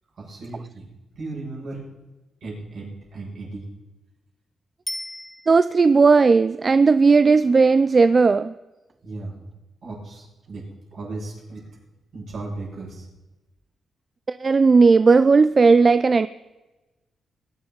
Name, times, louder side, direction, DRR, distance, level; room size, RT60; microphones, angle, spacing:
voice 1, 0.2-0.9 1.1-1.9 2.4-3.7 9.0-9.4 9.8-11.7 12.1-13.1, right 2 dB, 55° right, -3 dB, 6.4 m, -36 dB
Bicycle bell, 4.9-6.0 15.1-15.2, left 1 dB, 5° left, 1.0 m, -35 dB
voice 2, 5.5-8.5 14.3-16.3, right 4 dB, 30° right, 14 dB, 0.4 m, -16 dB
22.0 x 11.0 x 3.9 m, 1.1 s
cardioid pair, 125°, 0 cm